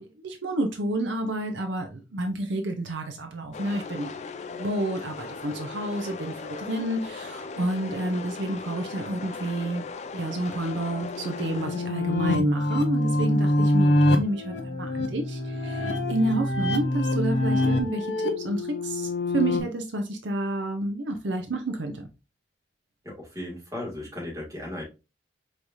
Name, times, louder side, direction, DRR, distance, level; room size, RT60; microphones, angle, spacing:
voice 1, 0.0-4.2 4.5-9.8 10.1-22.1, right 1 dB, 75° right, 0.7 m, -30 dB
sound 1, 3.5-12.2, left 4 dB, 35° left, 0.3 m, -38 dB
sound 2, 10.7-19.6, left 1 dB, 65° left, 0.7 m, -25 dB
voice 2, 23.0-24.8, left 1 dB, 20° right, 2.1 m, -36 dB
4.8 x 3.2 x 2.6 m
head